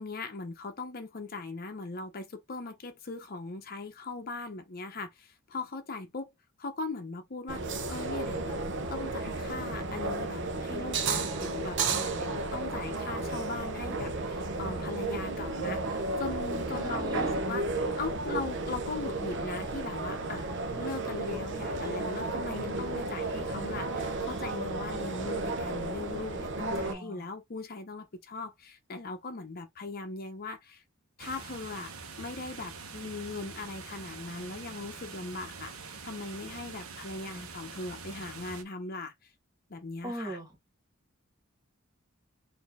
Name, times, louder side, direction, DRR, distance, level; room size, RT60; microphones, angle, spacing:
voice 1, 0.0-6.3 6.6-7.6 7.9-8.6 8.9-17.6 18.0-20.5 20.8-30.8 31.2-31.9 32.2-39.3 39.7-40.4, left 3 dB, 45° left, 0.7 m, -39 dB
sound 1, 7.5-26.9, right 2 dB, 60° right, 0.7 m, -33 dB
voice 2, 16.7-17.3 26.7-27.3 40.0-40.6, right 1 dB, 20° right, 1.5 m, -40 dB
sound 2, 31.2-38.6, right 5 dB, 85° right, 1.0 m, -45 dB
4.3 x 2.7 x 3.5 m
head